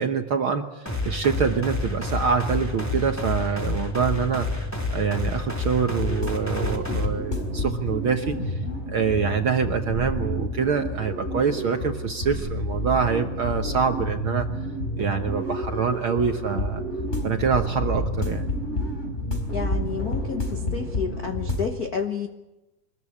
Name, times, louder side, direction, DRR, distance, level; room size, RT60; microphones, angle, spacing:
voice 1, 0.0-4.5 4.9-8.6 8.9-14.5 15.0-16.8 17.2-18.5, right 6 dB, 60° right, 5 dB, 1.4 m, -25 dB
sound 1, 0.9-7.1, left 3 dB, 5° left, 3.0 m, -29 dB
sound 2, 5.9-21.7, left 1 dB, 20° left, 4.6 m, -29 dB
voice 2, 19.5-22.3, left 6 dB, 65° left, 5 dB, 0.9 m, -30 dB
25.0 x 21.0 x 8.5 m, 1.0 s
omnidirectional pair, 3.6 m